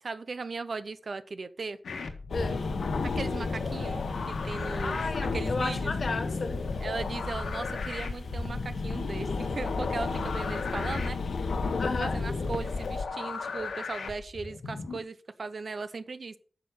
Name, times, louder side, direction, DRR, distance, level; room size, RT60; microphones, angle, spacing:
voice 1, 0.0-1.8 3.0-4.0 4.3-5.0 5.3-5.9 6.8-11.2 12.0-16.4, right 4 dB, 45° right, 0.7 m, -38 dB
sound 1, 1.8-15.0, left 4 dB, 85° left, 1.7 m, -36 dB
sound 2, 2.3-13.0, left 4 dB, 65° left, 1.2 m, -33 dB
voice 2, 2.3-2.7 4.8-6.7 11.8-12.2, left 3 dB, 45° left, 1.3 m, -33 dB
9.8 x 6.5 x 7.0 m
wide cardioid pair, 180°, 0 cm